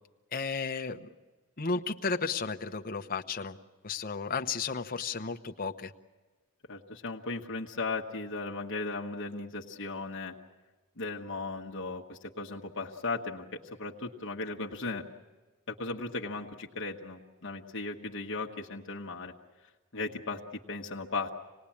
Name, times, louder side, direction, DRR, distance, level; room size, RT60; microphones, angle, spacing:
voice 1, 0.3-1.1 1.6-3.6 3.8-5.9, left 4 dB, 40° left, 4 dB, 1.0 m, -33 dB
voice 2, 6.7-10.3 11.0-13.4 13.8-15.0 15.7-19.3 19.9-20.4 20.7-21.4, left 3 dB, 60° left, 0 dB, 1.2 m, -36 dB
27.0 x 19.0 x 8.6 m, 1.3 s
head